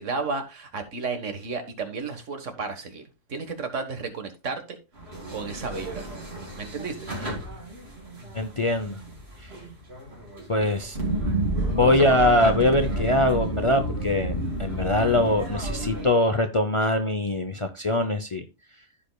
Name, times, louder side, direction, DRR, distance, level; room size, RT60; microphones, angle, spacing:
voice 1, 0.0-3.0 3.3-4.8 5.3-6.1 6.6-7.0 11.8-12.1 12.4-12.5, right 4 dB, 70° right, 1.7 m, -32 dB
sound 1, 5.0-16.1, right 1 dB, 50° right, 3.1 m, -31 dB
voice 2, 8.3-9.0 10.5-11.0 11.7-18.4, left 1 dB, 35° left, 0.6 m, -23 dB
15.0 x 5.1 x 2.3 m
omnidirectional pair, 1.3 m